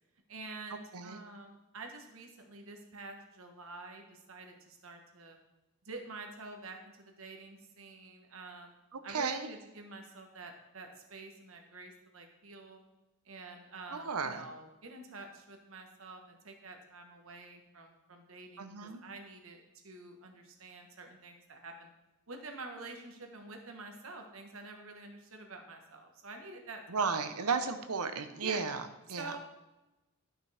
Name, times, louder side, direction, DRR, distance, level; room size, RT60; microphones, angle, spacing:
voice 1, 0.3-5.4 5.8-6.8 7.0-8.8 9.0-12.9 13.2-21.9 22.3-27.1 28.4-28.6 29.2-29.4, right 3 dB, 65° right, 4 dB, 1.3 m, -48 dB
voice 2, 8.9-9.5 13.9-14.4 18.6-19.0 26.9-29.3, right 5 dB, 85° right, 9 dB, 0.8 m, -34 dB
12.0 x 6.0 x 3.4 m, 1.0 s
head